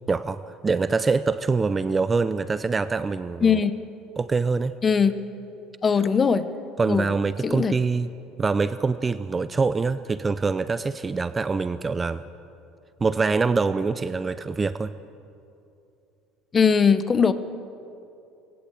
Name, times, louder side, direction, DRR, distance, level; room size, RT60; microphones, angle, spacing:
voice 1, 0.0-3.6 4.2-4.7 6.8-8.1 8.4-12.2 13.0-14.9, right 4 dB, 15° right, 14 dB, 0.4 m, -24 dB
voice 2, 3.4-3.8 4.8-5.2 5.8-6.5 6.9-7.1 7.4-7.7 16.5-17.3, left 6 dB, 20° left, 13 dB, 0.8 m, -20 dB
19.0 x 16.5 x 8.2 m, 2.7 s
cardioid pair, 150°, 0 cm